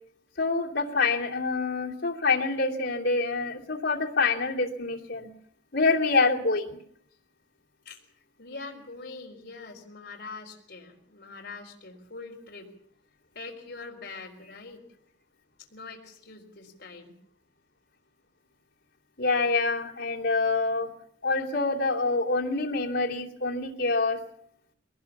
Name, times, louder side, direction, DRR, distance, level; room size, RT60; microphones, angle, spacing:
voice 1, 0.4-5.3 5.7-6.8 19.2-20.9 21.2-24.2, left 3 dB, 85° left, -3 dB, 2.8 m, -26 dB
voice 2, 8.4-12.7 13.3-14.8 15.6-17.2, left 3 dB, 65° left, -1 dB, 3.9 m, -43 dB
22.5 x 19.0 x 7.2 m, 0.68 s
head